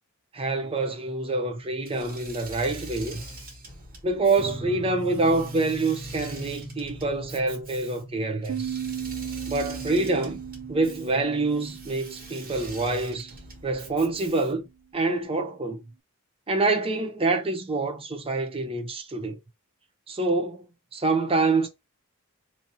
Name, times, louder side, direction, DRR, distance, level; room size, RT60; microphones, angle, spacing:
voice 1, 0.3-3.2 4.0-8.8 9.5-10.4 10.7-13.3 13.6-14.7 14.9-15.8 16.5-19.4 20.1-20.7 20.9-21.7, right 3 dB, 25° right, 0.7 m, -26 dB
Engine / Mechanisms, 1.8-14.7, right 1 dB, 40° right, 1.4 m, -44 dB
sound 1, 4.4-13.3, right 1 dB, 10° left, 1.2 m, -42 dB
sound 2, 8.5-13.6, right 9 dB, 60° right, 0.4 m, -37 dB
2.9 x 2.8 x 4.0 m
head